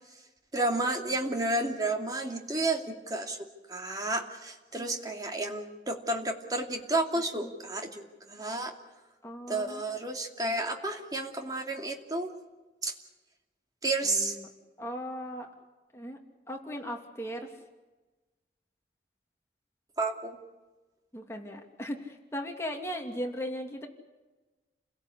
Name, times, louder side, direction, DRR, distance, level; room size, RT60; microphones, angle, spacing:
voice 1, 0.5-3.4 3.7-8.7 9.5-12.3 12.8-12.9 13.8-14.4 20.0-20.4, right 2 dB, 20° right, 2 dB, 2.7 m, -31 dB
voice 2, 9.2-9.8 14.0-14.5 14.8-15.5 15.9-16.2 16.5-17.5 21.1-23.9, equal, 15° left, 1 dB, 2.8 m, -37 dB
29.5 x 17.5 x 8.5 m, 1.2 s
head